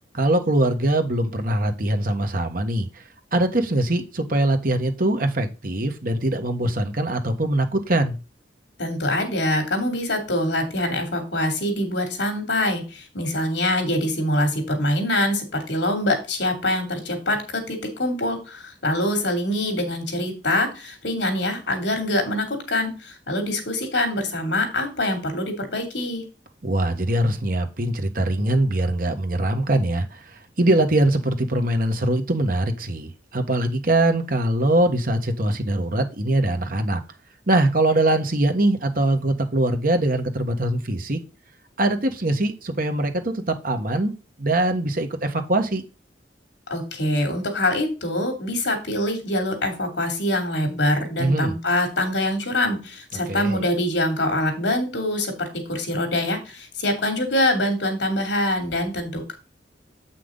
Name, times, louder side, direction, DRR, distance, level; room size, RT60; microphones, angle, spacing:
voice 1, 0.1-3.0 3.3-8.2 26.6-37.0 37.5-41.2 41.8-45.8 51.2-51.5 53.3-53.6, right 1 dB, 55° right, 1.4 m, -22 dB
voice 2, 8.8-26.2 46.7-59.3, left 1 dB, 85° left, 3.1 m, -24 dB
8.4 x 6.0 x 3.9 m
head